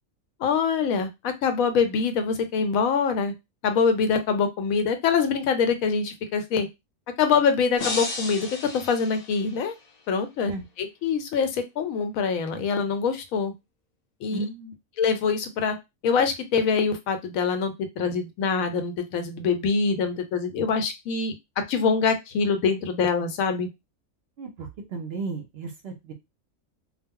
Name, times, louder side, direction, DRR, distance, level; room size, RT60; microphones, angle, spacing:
voice 1, 0.4-3.3 3.6-6.7 7.2-8.5 8.7-9.8 10.1-10.5 10.8-13.5 14.2-14.4 15.0-15.8 16.0-23.7, left 5 dB, 85° left, 8 dB, 1.0 m, -24 dB
sound 1, 7.8-9.9, left 3 dB, 60° left, 0.4 m, -34 dB
voice 2, 14.3-14.7 24.4-26.1, right 4 dB, 60° right, 4 dB, 0.7 m, -34 dB
2.3 x 2.0 x 3.5 m, 0.22 s
omnidirectional pair, 1.4 m